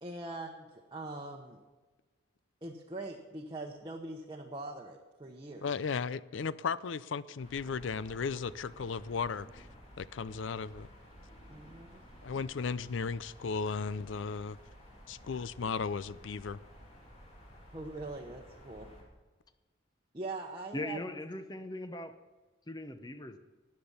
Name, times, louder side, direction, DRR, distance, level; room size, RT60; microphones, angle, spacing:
voice 1, 0.0-1.6 2.6-5.7 11.5-12.0 17.7-18.9 20.1-21.0 21.5-21.6, right 2 dB, 25° right, 0 dB, 1.0 m, -42 dB
voice 2, 5.6-9.7 10.0-10.9 12.2-14.6 15.1-16.6, left 5 dB, 70° left, 17 dB, 0.4 m, -35 dB
sound 1, 7.4-19.0, equal, 35° left, 3.1 m, -54 dB
voice 3, 20.7-22.2 22.7-23.4, left 1 dB, 20° left, 9 dB, 0.8 m, -39 dB
13.5 x 9.7 x 5.6 m, 1.3 s
head